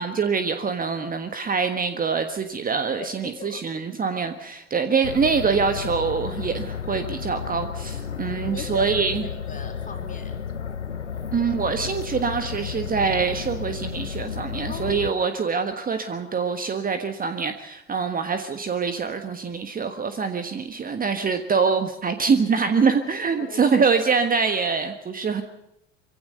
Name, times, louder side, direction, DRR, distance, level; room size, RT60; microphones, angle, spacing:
voice 1, 0.0-9.2 11.3-25.4, right 5 dB, 25° right, 8 dB, 1.4 m, -24 dB
voice 2, 3.0-3.6 4.1-4.2 7.9-10.4 14.7-15.0 23.3-23.8, left 4 dB, 25° left, 4 dB, 4.1 m, -40 dB
sound 1, 5.0-15.1, left 7 dB, 90° left, 0.7 m, -32 dB
24.0 x 16.5 x 6.7 m, 0.85 s
figure-of-eight pair, 65°, 34 cm